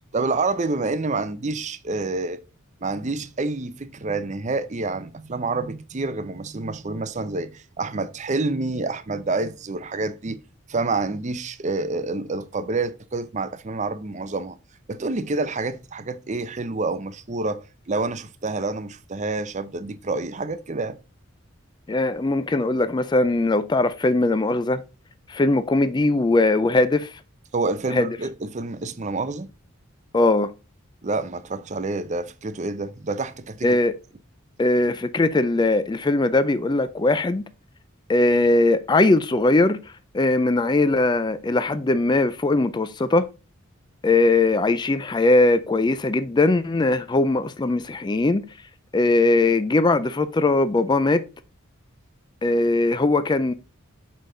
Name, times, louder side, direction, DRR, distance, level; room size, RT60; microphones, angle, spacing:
voice 1, 0.1-2.4 2.8-10.4 10.7-14.6 14.9-21.0 27.5-29.5 31.0-33.8, right 3 dB, 35° right, 0.6 m, -28 dB
voice 2, 21.9-24.8 25.3-27.2 27.9-28.2 30.1-30.5 33.6-33.9 34.6-37.4 38.1-39.8 40.1-43.3 44.0-48.4 48.9-51.2 52.4-53.5, left 2 dB, 20° left, 0.4 m, -20 dB
6.6 x 5.2 x 3.8 m
head